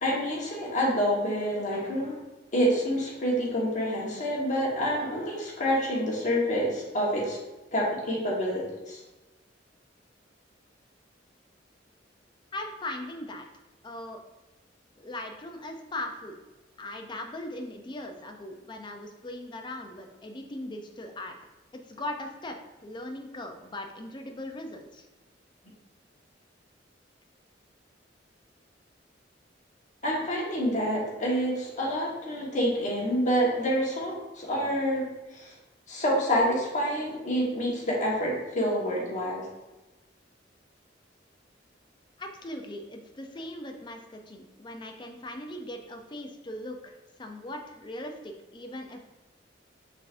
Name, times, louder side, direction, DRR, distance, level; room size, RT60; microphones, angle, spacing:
voice 1, 0.0-2.2 2.5-7.4 7.7-9.0 30.0-35.0 35.3-35.5 35.9-39.5, equal, 45° left, -4 dB, 1.3 m, -27 dB
voice 2, 12.5-13.5 13.8-14.2 15.0-16.4 16.8-21.3 21.9-22.6 22.8-25.0 42.2-49.0, left 1 dB, 25° left, 4 dB, 0.5 m, -39 dB
5.8 x 3.5 x 2.5 m, 1.1 s
head